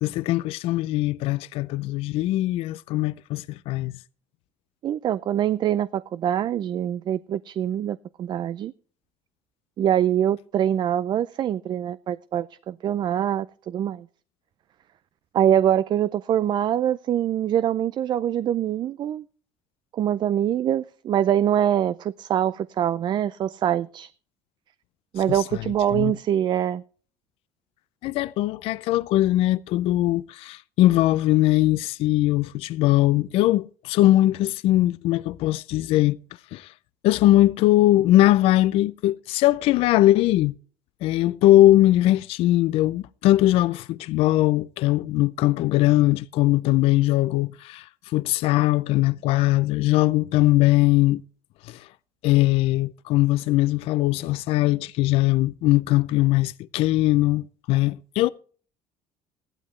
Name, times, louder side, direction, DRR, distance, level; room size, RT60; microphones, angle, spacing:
voice 1, 0.0-3.9 25.2-25.6 25.9-26.1 28.0-36.2 36.5-36.7 37.0-40.5 41.0-47.9 48.1-51.2 51.6-51.9 52.2-58.3, left 16 dB, 70° left, 0.5 m, -20 dB
voice 2, 4.8-8.7 9.8-14.0 15.3-19.2 19.9-24.1 25.1-26.8, right 10 dB, 50° right, 0.5 m, -24 dB
15.0 x 12.0 x 3.2 m
cardioid pair, 105°, 10 cm